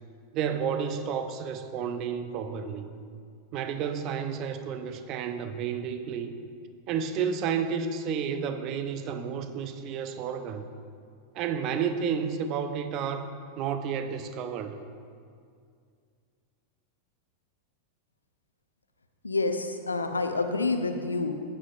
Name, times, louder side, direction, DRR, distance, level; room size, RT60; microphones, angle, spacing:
voice 1, 0.3-2.9 3.5-6.3 6.9-10.7 11.3-13.3 13.6-14.8, right 7 dB, 40° right, 9 dB, 0.6 m, -31 dB
voice 2, 19.2-21.3, left 3 dB, 80° left, 7 dB, 0.7 m, -28 dB
14.5 x 9.1 x 2.4 m, 2.3 s
figure-of-eight pair, 90°, 0 cm